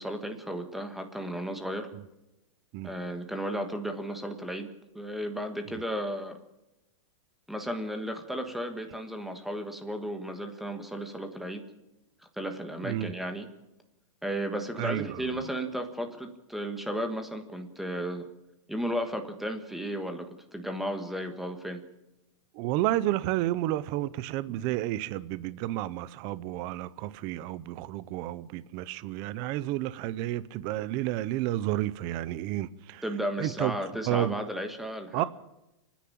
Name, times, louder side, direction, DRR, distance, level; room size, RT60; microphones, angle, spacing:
voice 1, 0.0-1.9 2.8-4.7 4.9-6.4 7.5-11.6 12.4-13.5 14.2-18.3 18.7-21.8 24.5-24.6 33.0-35.3, equal, ahead, 1.4 m, -34 dB
voice 2, 12.8-13.1 14.8-15.3 22.5-33.0 33.4-33.7 34.1-34.4 35.1-35.2, right 15 dB, 25° right, 0.6 m, -31 dB
30.0 x 10.0 x 8.6 m
supercardioid pair, 175°, 16 cm